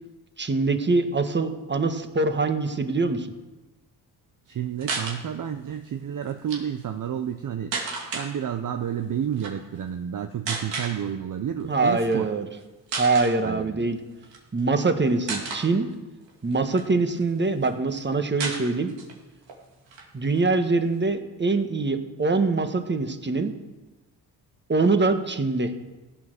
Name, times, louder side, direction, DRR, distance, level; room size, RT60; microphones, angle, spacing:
voice 1, 0.4-3.3 11.6-12.5 12.9-14.0 14.5-15.9 16.4-18.9 20.1-23.5 24.7-25.7, right 3 dB, 25° right, 8 dB, 1.5 m, -24 dB
voice 2, 4.5-7.7 8.1-12.3 13.4-13.8, right 9 dB, 45° right, 7 dB, 0.8 m, -30 dB
sound 1, 4.8-5.2 6.3-6.6 7.7-8.3 9.3-9.5 10.5-11.0 12.0-12.2 12.5-12.6 12.9-13.3 14.2-14.8 15.3-15.7 16.3-17.3 17.6-17.7 17.9-18.0 18.4-19.1 19.5-19.6 19.9-20.9, right 4 dB, 85° right, 2.7 m, -32 dB
15.5 x 8.8 x 6.7 m, 1.1 s
cardioid pair, 70°, 43 cm